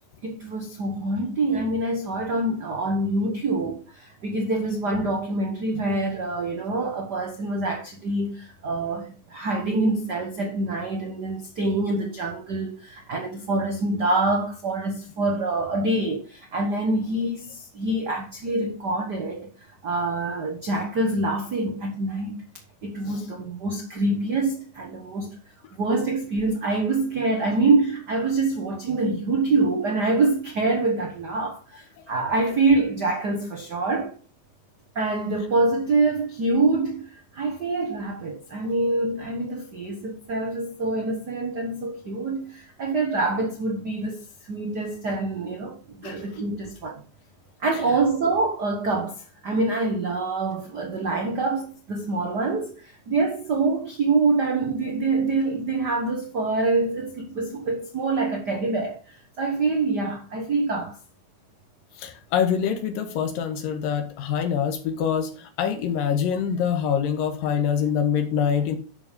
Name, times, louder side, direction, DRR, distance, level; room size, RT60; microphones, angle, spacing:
voice 1, 0.2-22.4 22.8-25.4 25.8-34.1 34.9-47.0 47.6-61.0, right 3 dB, 85° right, 0.9 m, -25 dB
voice 2, 62.0-68.8, left 8 dB, 90° left, 3.1 m, -25 dB
11.5 x 5.2 x 5.1 m
omnidirectional pair, 3.8 m